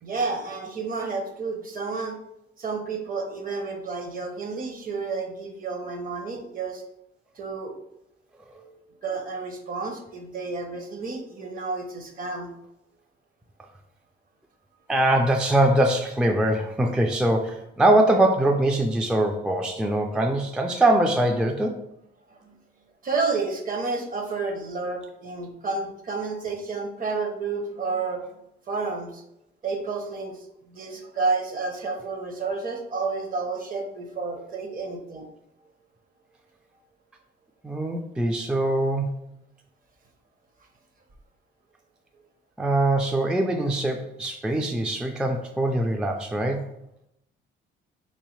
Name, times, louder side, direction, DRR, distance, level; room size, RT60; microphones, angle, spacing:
voice 1, 0.0-2.2 2.6-6.8 7.4-7.8 8.5-12.5 22.3-22.5 23.0-28.2 28.7-29.2 29.6-30.4 30.7-35.3, right 4 dB, 45° right, 4 dB, 0.8 m, -30 dB
voice 2, 14.9-21.8 37.6-39.1 42.6-46.7, right 1 dB, 5° right, 3 dB, 0.3 m, -22 dB
3.3 x 3.1 x 3.1 m, 0.81 s
cardioid pair, 90°, 20 cm